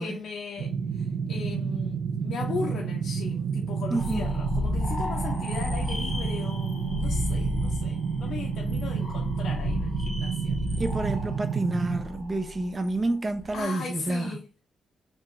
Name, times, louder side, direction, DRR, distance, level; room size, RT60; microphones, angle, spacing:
voice 1, 0.0-10.6 13.5-14.5, left 5 dB, 60° left, 0.6 m, -37 dB
sound 1, 0.6-12.0, right 6 dB, 75° right, 0.6 m, -30 dB
sound 2, 3.9-13.6, left 3 dB, 10° left, 1.1 m, -33 dB
voice 2, 3.9-4.2 10.8-14.4, right 2 dB, 25° right, 0.5 m, -29 dB
4.7 x 2.4 x 3.0 m
wide cardioid pair, 175°, 0 cm